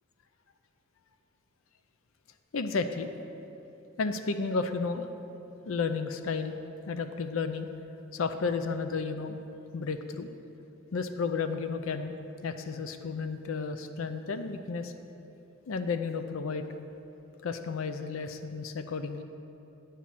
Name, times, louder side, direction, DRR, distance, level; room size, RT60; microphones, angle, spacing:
voice 1, 2.5-3.1 4.0-5.1 5.7-6.6 6.9-7.7 8.1-9.4 9.7-10.3 10.9-12.1 12.4-14.9 15.7-16.7 17.4-19.2, left 4 dB, 80° left, 9 dB, 0.5 m, -32 dB
9.6 x 5.7 x 7.5 m, 3.0 s
head